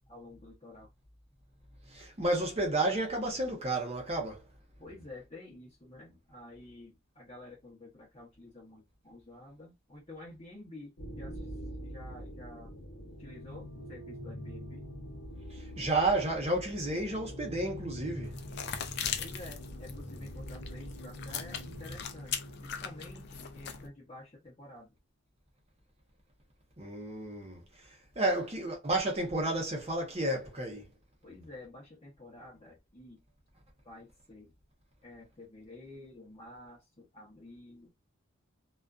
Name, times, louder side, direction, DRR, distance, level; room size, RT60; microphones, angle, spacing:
voice 1, 0.1-0.9 4.8-11.4 11.8-12.7 13.2-14.9 19.2-22.3 22.6-24.9 31.2-33.2 33.9-34.5 35.0-37.9, left 2 dB, 25° left, 0.7 m, -50 dB
voice 2, 1.9-4.4 15.5-18.3 26.8-27.6 28.2-30.9, right 2 dB, 30° right, 0.7 m, -31 dB
sound 1, 11.0-22.9, equal, 70° left, 0.8 m, -44 dB
sound 2, 18.2-23.9, left 7 dB, 50° left, 0.4 m, -40 dB
2.4 x 2.3 x 2.3 m
head